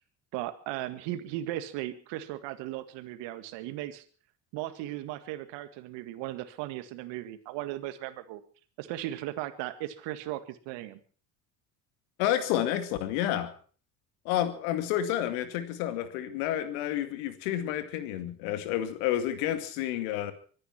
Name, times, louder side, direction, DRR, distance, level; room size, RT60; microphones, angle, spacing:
voice 1, 0.3-4.0 4.5-8.4 8.8-11.0, right 14 dB, 70° right, 12 dB, 2.0 m, -37 dB
voice 2, 12.2-13.5 14.2-20.3, left 12 dB, 75° left, 10 dB, 2.4 m, -30 dB
24.0 x 10.0 x 5.9 m, 0.43 s
hypercardioid pair, 70°, 45 cm